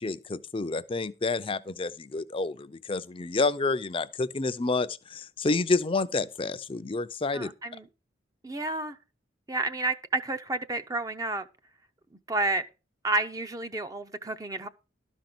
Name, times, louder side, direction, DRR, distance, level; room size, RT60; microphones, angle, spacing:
voice 1, 0.0-7.5, left 3 dB, 30° left, 0.5 m, -29 dB
voice 2, 7.3-7.9 8.4-9.0 9.5-11.4 12.3-12.6 13.0-14.7, right 2 dB, 20° right, 0.6 m, -30 dB
12.5 x 5.2 x 6.0 m
head